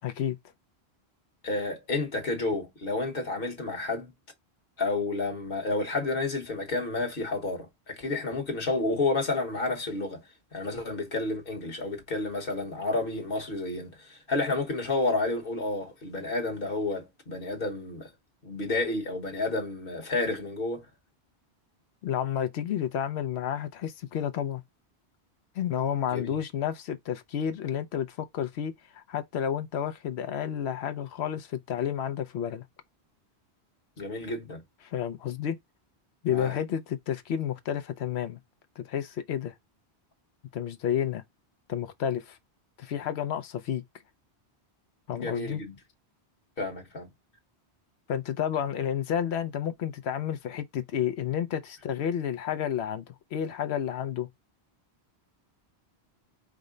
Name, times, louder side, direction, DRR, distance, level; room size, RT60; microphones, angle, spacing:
voice 1, 0.0-0.4 22.0-24.6 25.6-32.7 34.8-35.6 36.2-38.4 38.8-39.5 40.5-41.2 41.7-42.4 42.8-43.8 45.1-45.6 48.1-54.3, left 9 dB, 75° left, 0.9 m, -31 dB
voice 2, 1.4-4.1 4.8-10.3 10.5-18.1 18.4-20.9 26.1-26.4 34.0-34.6 36.3-36.5 45.1-45.7 46.6-47.1, left 2 dB, 55° left, 1.4 m, -30 dB
4.8 x 2.1 x 3.7 m
omnidirectional pair, 1.1 m